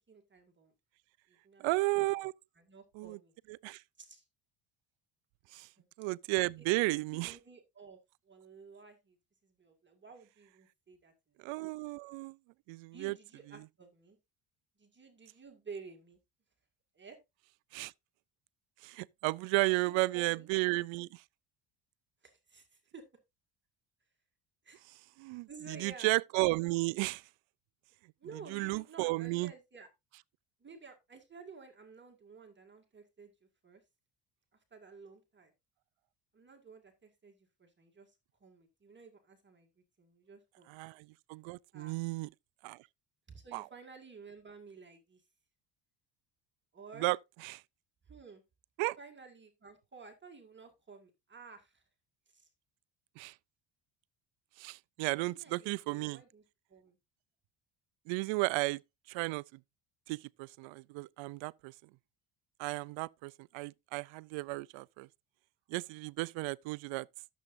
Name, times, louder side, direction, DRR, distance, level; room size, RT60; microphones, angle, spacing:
voice 1, 0.1-0.7 1.3-2.0 2.6-3.3 4.0-4.2 5.8-5.9 6.9-8.0 8.2-9.2 9.4-11.6 12.9-14.2 14.8-16.2 16.9-17.2 19.7-20.5 22.2-23.0 24.6-24.8 25.5-26.1 28.2-29.9 30.6-33.8 34.7-35.5 36.3-39.7 40.0-40.8 41.7-42.0 43.3-45.3 46.7-47.1 48.1-48.4 49.0-51.8 52.3-52.5 55.2-56.4 56.7-57.0, right 5 dB, 25° right, 2.0 m, -53 dB
voice 2, 1.6-2.3 3.0-3.2 3.6-3.8 5.5-5.7 6.0-7.4 11.4-12.4 12.7-13.1 17.7-17.9 18.8-21.2 25.2-27.2 28.5-29.5 40.7-42.3 42.6-42.8 43.5-43.6 47.0-47.2 47.4-47.6 48.8-49.0 53.2-53.3 54.6-56.2 58.1-58.8 59.1-59.6 60.1-61.7 62.6-65.1 65.7-67.1, right 23 dB, 80° right, 0.5 m, -33 dB
14.0 x 7.3 x 2.6 m
cardioid pair, 115°, 45 cm